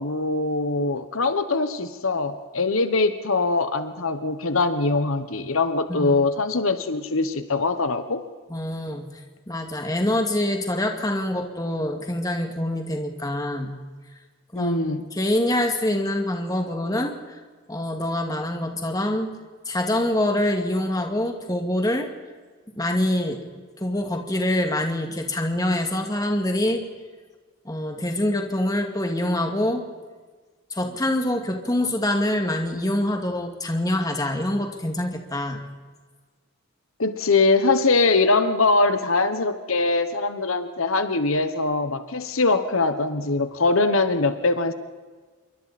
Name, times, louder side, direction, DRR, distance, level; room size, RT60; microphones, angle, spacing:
voice 1, 0.0-8.2 14.5-15.0 37.0-44.7, left 3 dB, 80° left, 10 dB, 1.3 m, -22 dB
voice 2, 8.5-9.1 9.5-13.8 14.5-17.4 17.7-19.3 19.7-22.1 22.8-23.4 23.8-26.8 27.6-29.8 30.7-35.7, left 1 dB, 15° left, 3 dB, 2.3 m, -25 dB
27.0 x 23.5 x 4.4 m, 1.4 s
head